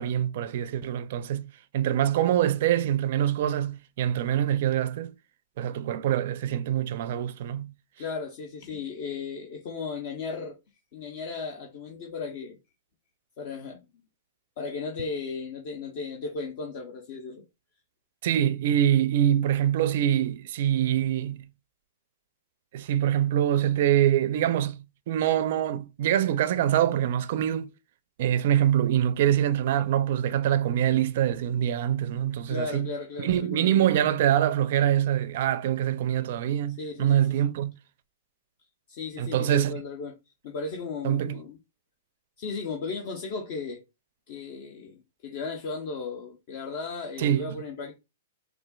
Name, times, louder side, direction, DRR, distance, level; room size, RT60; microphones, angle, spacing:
voice 1, 0.0-5.1 5.6-7.7 18.2-21.5 22.7-27.7 28.2-32.9 33.2-37.7 39.2-39.8 41.0-41.4 47.2-47.6, right 11 dB, 60° right, 0.4 m, -24 dB
voice 2, 8.0-10.6 10.9-12.6 13.4-13.9 14.6-17.4 32.5-33.9 36.8-37.5 38.9-40.1 40.4-41.6 42.4-43.8 44.3-47.9, left 4 dB, 55° left, 0.7 m, -36 dB
4.1 x 2.4 x 2.3 m
hypercardioid pair, 125°, 0 cm